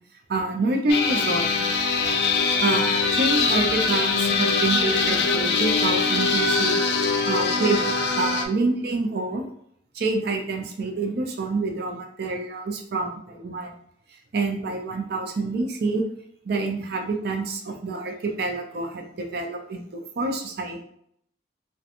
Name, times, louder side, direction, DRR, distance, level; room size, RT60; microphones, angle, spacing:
voice 1, 0.3-1.5 2.6-6.8 7.3-7.8 8.2-9.5 9.9-13.7 14.3-16.0 16.5-20.8, right 3 dB, 65° right, 3 dB, 0.5 m, -27 dB
sound 1, 0.9-8.5, left 4 dB, 65° left, 0.4 m, -22 dB
2.8 x 2.2 x 2.4 m, 0.68 s
head